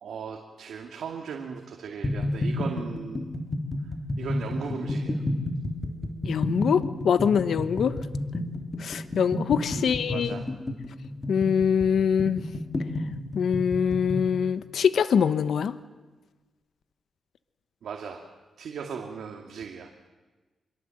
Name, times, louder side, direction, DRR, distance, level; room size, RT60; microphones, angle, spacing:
voice 1, 0.0-3.3 4.2-5.2 9.7-10.4 17.8-18.2 18.6-19.9, right 6 dB, 80° right, 2 dB, 2.4 m, -37 dB
sound 1, 2.0-14.3, left 1 dB, 25° left, 3.3 m, -30 dB
voice 2, 6.3-7.9 8.8-10.4 11.3-12.4 13.3-15.7, left 7 dB, 75° left, 12 dB, 1.0 m, -24 dB
25.5 x 22.5 x 7.8 m, 1.3 s
cardioid pair, 95°, 0 cm